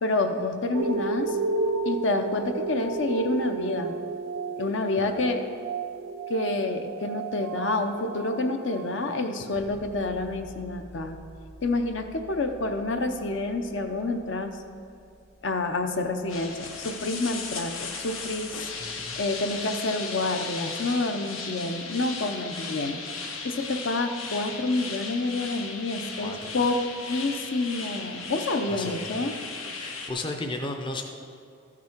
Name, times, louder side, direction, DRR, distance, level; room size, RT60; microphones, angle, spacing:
voice 1, 0.0-1.4 1.8-3.9 4.6-5.4 6.3-11.2 11.6-14.5 15.4-18.7 19.2-23.0 23.4-26.8 27.1-29.3, left 2 dB, 65° left, 6 dB, 0.7 m, -28 dB
sound 1, 0.7-9.6 10.3-10.4, right 4 dB, 85° right, 0.4 m, -32 dB
Bass guitar, 9.5-19.4, equal, 50° left, 1.4 m, -51 dB
sound 2, 16.3-30.1, left 4 dB, 85° left, 1.2 m, -36 dB
voice 2, 28.7-29.1 29.7-31.0, left 2 dB, 25° left, 3 dB, 0.5 m, -34 dB
14.0 x 6.0 x 4.5 m, 2.5 s
head